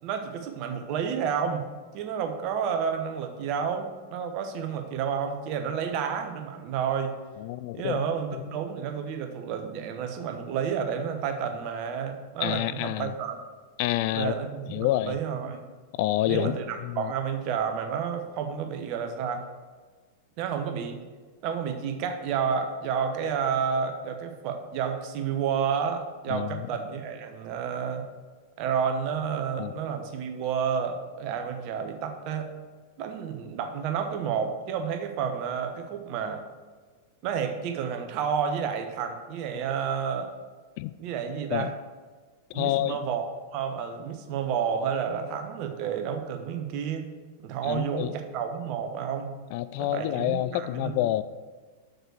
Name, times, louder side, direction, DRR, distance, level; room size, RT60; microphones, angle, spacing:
voice 1, 0.0-1.6 1.9-7.1 7.7-13.4 14.1-15.6 16.3-19.4 20.4-21.0 21.4-28.0 28.6-32.5 33.0-36.4 37.2-40.3 41.0-41.7 42.5-43.3 43.5-47.1 47.4-49.3 49.8-51.0, right 7 dB, 45° right, 6 dB, 1.1 m, -30 dB
voice 2, 7.4-8.4 12.4-13.1 13.8-14.3 14.7-15.2 16.0-16.6 16.8-17.1 26.3-26.7 29.6-29.7 40.8-40.9 41.5-41.7 42.5-43.0 47.6-48.1 49.5-51.2, left 15 dB, 50° left, 15 dB, 0.3 m, -28 dB
6.5 x 6.5 x 6.4 m, 1.4 s
figure-of-eight pair, 95°, 0 cm